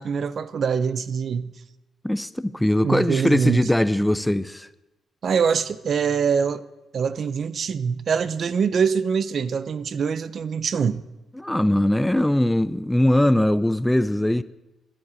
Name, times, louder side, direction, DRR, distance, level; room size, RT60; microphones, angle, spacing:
voice 1, 0.0-1.6 2.8-3.7 5.2-6.6 6.9-11.0, right 6 dB, 55° right, 0.7 m, -24 dB
voice 2, 2.0-4.7 11.4-14.4, left 1 dB, 5° left, 0.5 m, -21 dB
13.0 x 9.7 x 8.8 m
cardioid pair, 105°, 0 cm